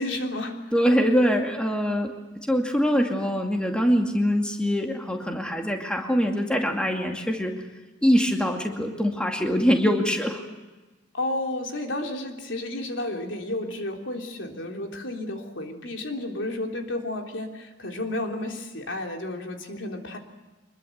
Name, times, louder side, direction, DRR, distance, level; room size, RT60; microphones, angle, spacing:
voice 1, 0.0-0.6 11.1-20.2, left 1 dB, 85° left, 3 dB, 3.5 m, -32 dB
voice 2, 0.7-2.1 2.5-7.5 8.0-10.4, equal, 5° left, 2 dB, 2.3 m, -23 dB
24.5 x 21.5 x 8.1 m, 1.2 s
head